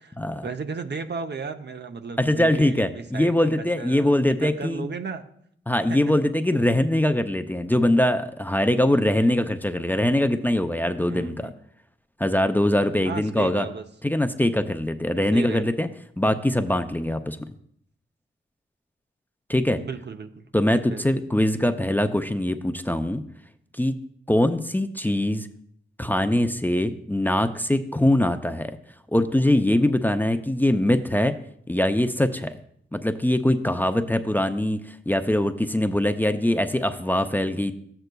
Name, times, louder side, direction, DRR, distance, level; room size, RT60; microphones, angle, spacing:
voice 1, 0.4-4.2 4.4-5.2 5.9-6.1 11.1-11.5 13.0-13.8 15.3-15.8 19.8-20.5 20.9-21.2 21.6-21.7, right 5 dB, 60° right, 6 dB, 0.7 m, -35 dB
voice 2, 2.2-4.9 5.7-11.5 12.2-13.7 14.0-15.9 16.2-17.4 19.5-19.8 20.5-23.2 23.7-24.0 24.3-25.5 26.0-28.7 29.1-31.3 31.7-32.6 32.9-34.8 35.1-37.7, left 1 dB, 10° left, 8 dB, 0.5 m, -22 dB
13.0 x 7.9 x 2.2 m, 0.68 s
cardioid pair, 70°, 20 cm